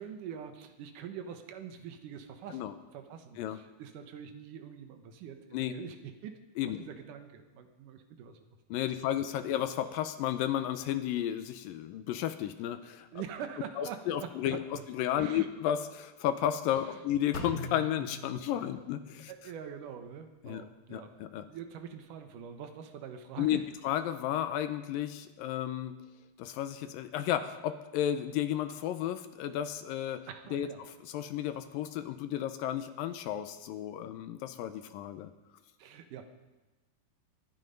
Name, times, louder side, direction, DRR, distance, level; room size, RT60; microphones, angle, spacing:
voice 1, 0.0-8.4 8.8-9.1 9.4-9.5 13.1-14.6 15.2-15.5 16.7-17.0 18.5-18.7 19.3-21.1 21.5-23.7 30.3-30.8 35.8-36.3, right 8 dB, 70° right, 7 dB, 2.3 m, -44 dB
voice 2, 8.7-13.1 13.8-14.6 14.9-19.3 20.4-20.6 20.9-21.5 23.4-26.0 26.4-30.2 30.5-35.3, left 11 dB, 80° left, 9 dB, 2.2 m, -33 dB
Drum, 17.3-19.3, equal, 30° left, 2.3 m, -42 dB
23.5 x 9.8 x 5.3 m, 1.1 s
omnidirectional pair, 4.6 m